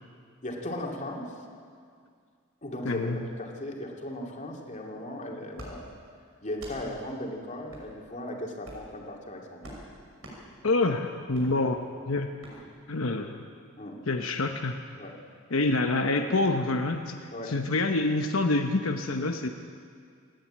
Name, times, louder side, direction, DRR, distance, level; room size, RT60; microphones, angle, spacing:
voice 1, 0.4-1.3 2.6-5.9 6.4-9.8 12.5-12.6 13.8-14.0 14.9-15.2 17.3-17.5, left 1 dB, 35° left, -1 dB, 2.6 m, -37 dB
voice 2, 2.8-3.2 10.6-11.8 12.1-12.3 12.9-13.4 14.1-14.7 15.5-19.5, left 2 dB, 80° left, 4 dB, 1.0 m, -27 dB
sound 1, 5.5-5.7 6.5-6.8 7.7-7.9 8.6-8.9 9.6-9.8 10.2-10.4 11.3-11.5 12.4-12.6, right 1 dB, 90° right, 5.8 m, -44 dB
28.0 x 10.5 x 8.9 m, 2.2 s
head